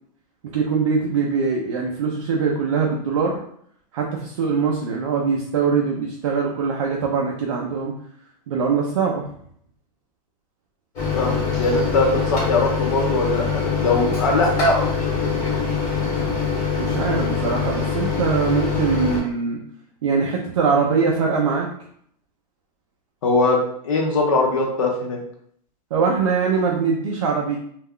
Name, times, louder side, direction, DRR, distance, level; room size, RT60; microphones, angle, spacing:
voice 1, 0.4-3.4 3.9-7.9 8.5-9.3 16.7-19.6 20.0-21.7 25.9-27.6, right 5 dB, 45° right, -1 dB, 0.4 m, -22 dB
Microwave oven, 11.0-19.2, left 5 dB, 15° left, 0.7 m, -24 dB
voice 2, 11.1-15.0 15.4-15.6 23.2-23.6 23.8-25.2, left 2 dB, 50° left, 0 dB, 0.6 m, -21 dB
2.3 x 2.1 x 3.5 m, 0.66 s
supercardioid pair, 180°, 21 cm